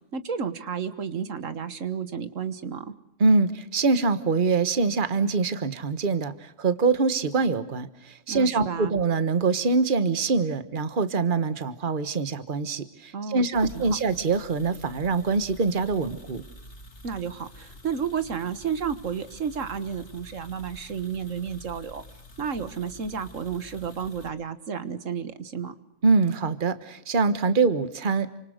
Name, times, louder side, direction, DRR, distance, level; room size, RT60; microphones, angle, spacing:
voice 1, 0.1-2.9 8.3-9.0 13.1-14.0 17.0-22.0 22.4-25.8, right 7 dB, 85° right, 12 dB, 1.8 m, -32 dB
voice 2, 3.2-16.4 26.0-28.3, right 4 dB, 45° right, 13 dB, 1.4 m, -24 dB
sound 1, 13.5-24.3, left 1 dB, 65° left, 3.1 m, -48 dB
29.0 x 26.0 x 6.5 m, 0.76 s
omnidirectional pair, 1.3 m